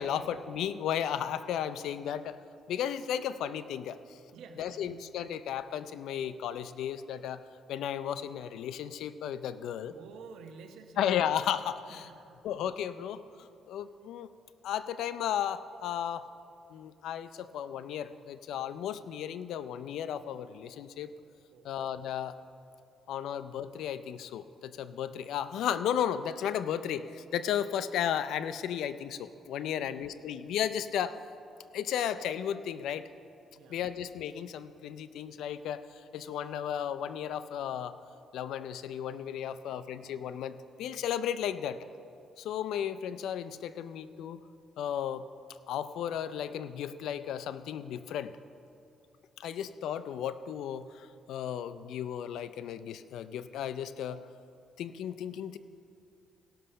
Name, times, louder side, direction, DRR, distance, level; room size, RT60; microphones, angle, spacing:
voice 1, 0.0-2.4 2.7-4.2 4.6-7.4 7.7-9.9 11.0-12.1 12.4-14.3 14.6-16.3 16.7-21.1 21.6-22.4 23.1-31.2 31.7-33.1 33.7-35.8 36.1-38.0 38.3-41.9 42.4-44.4 44.8-45.3 45.7-48.3 49.4-54.2 54.8-55.6, left 9 dB, 80° left, 13 dB, 0.5 m, -34 dB
voice 2, 4.3-5.2 9.9-11.3 11.9-12.4 21.5-21.8 29.7-30.4 33.5-33.8 39.5-39.6, right 5 dB, 85° right, 5 dB, 1.0 m, -51 dB
17.0 x 6.4 x 5.5 m, 2.5 s
cardioid pair, 90°, 0 cm